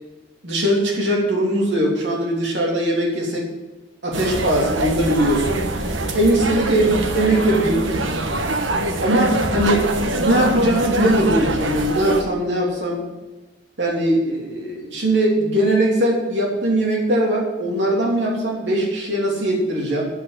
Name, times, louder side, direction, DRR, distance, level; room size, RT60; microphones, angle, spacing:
voice 1, 0.4-3.5 4.0-5.6 6.1-6.9 7.1-7.8 9.0-9.9 10.1-13.0 13.8-20.1, right 1 dB, 65° right, -2 dB, 2.9 m, -20 dB
sound 1, 4.1-12.2, right 2 dB, 85° right, 1.1 m, -24 dB
8.6 x 8.1 x 7.7 m, 1.1 s
head